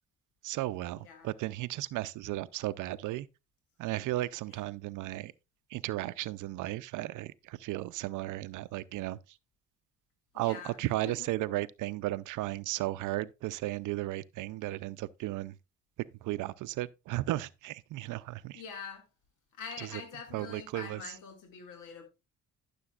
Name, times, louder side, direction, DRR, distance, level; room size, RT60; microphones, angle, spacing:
voice 1, 0.4-3.3 3.8-5.3 5.7-9.2 10.3-15.6 16.2-18.6 19.8-20.0 20.3-21.2, right 16 dB, 80° right, 0.5 m, -35 dB
voice 2, 10.3-11.3 18.5-19.0 19.6-22.0, left 6 dB, 85° left, 2.1 m, -45 dB
14.0 x 6.8 x 2.4 m
cardioid pair, 90°, 30 cm